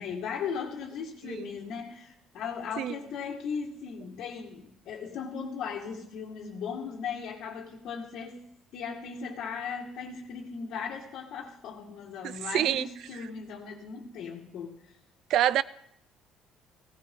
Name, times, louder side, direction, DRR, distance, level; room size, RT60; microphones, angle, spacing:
voice 1, 0.0-8.4 8.7-15.0, left 6 dB, 60° left, -3 dB, 2.0 m, -37 dB
voice 2, 12.2-12.9 15.3-15.6, right 12 dB, 55° right, 17 dB, 0.5 m, -26 dB
18.0 x 17.0 x 3.8 m, 0.72 s
cardioid pair, 170°, 0 cm